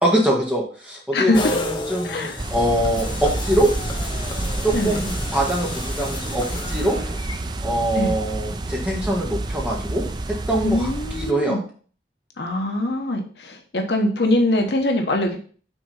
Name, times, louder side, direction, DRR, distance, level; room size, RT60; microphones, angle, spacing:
voice 1, 0.0-3.7 4.6-7.0 7.6-10.9 11.2-11.6, right 1 dB, 5° right, -3 dB, 1.8 m, -23 dB
voice 2, 1.1-1.5 2.0-2.4 4.7-5.0 8.0-8.1 10.6-11.6 12.4-15.4, left 1 dB, 70° left, 3 dB, 1.1 m, -22 dB
sound 1, 1.3-7.4, left 2 dB, 25° left, 0.8 m, -32 dB
sound 2, 2.4-11.3, right 2 dB, 25° right, 0.4 m, -29 dB
6.1 x 4.0 x 5.6 m, 0.43 s
head